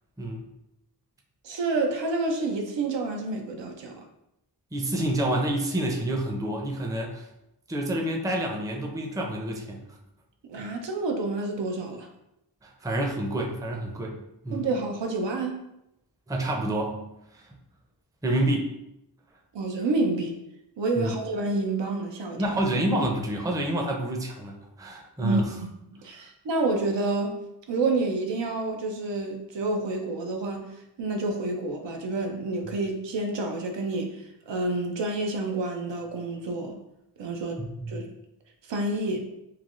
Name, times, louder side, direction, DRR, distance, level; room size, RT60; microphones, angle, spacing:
voice 1, 0.2-0.5 4.7-7.3 7.7-10.0 12.6-14.2 14.4-14.7 16.3-17.0 17.3-17.5 18.2-18.7 21.0-21.1 22.4-25.5 37.8-38.0, right 1 dB, 10° right, 1 dB, 0.5 m, -28 dB
voice 2, 1.4-3.9 10.5-12.1 14.5-15.6 19.5-20.4 20.8-22.4 25.2-27.4 27.7-36.8 37.2-37.6 37.9-38.0 38.7-39.2, right 2 dB, 85° right, 3 dB, 0.6 m, -29 dB
3.2 x 2.2 x 2.4 m, 0.85 s
cardioid pair, 40°, 42 cm